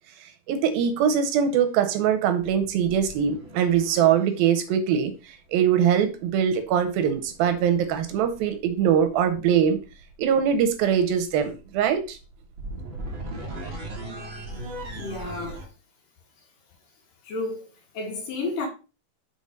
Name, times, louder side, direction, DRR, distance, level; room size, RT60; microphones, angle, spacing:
voice 1, 0.5-9.8 10.2-12.2, right 8 dB, 80° right, 2.8 m, -22 dB
sound 1, 0.9-1.2 2.4-4.5 6.3-15.7, right 1 dB, 50° right, 1.6 m, -40 dB
voice 2, 15.0-15.6 17.2-17.7 17.9-18.7, left 3 dB, 70° left, 3.2 m, -31 dB
7.0 x 4.4 x 5.2 m
omnidirectional pair, 4.2 m